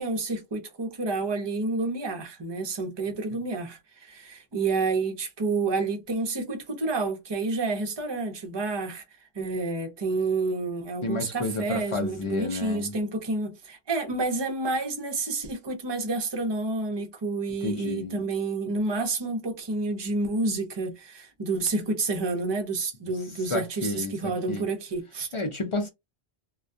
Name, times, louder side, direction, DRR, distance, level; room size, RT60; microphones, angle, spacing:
voice 1, 0.0-9.0 9.3-25.3, right 3 dB, 30° right, 0.5 m, -29 dB
voice 2, 11.0-12.9 17.6-18.2 23.5-24.7 25.3-25.9, left 2 dB, 45° left, 0.4 m, -31 dB
2.2 x 2.2 x 2.6 m
omnidirectional pair, 1.1 m